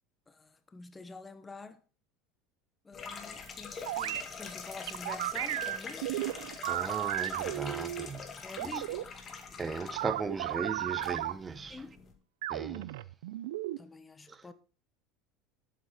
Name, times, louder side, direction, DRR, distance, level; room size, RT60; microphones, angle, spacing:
voice 1, 0.3-1.8 2.8-6.0 8.4-9.0 11.7-12.0 13.8-14.5, left 3 dB, 15° left, 0.9 m, -47 dB
sound 1, 2.9-12.1, left 5 dB, 35° left, 2.1 m, -45 dB
sound 2, 3.9-4.2 4.9-8.1 8.6-9.0 10.0-11.3 12.4-13.8, right 15 dB, 85° right, 0.5 m, -34 dB
voice 2, 6.6-8.3 8.6-8.8 9.6-11.8 12.5-12.9 14.3-14.4, right 5 dB, 20° right, 1.0 m, -37 dB
11.5 x 7.7 x 4.2 m
supercardioid pair, 105°, 0 cm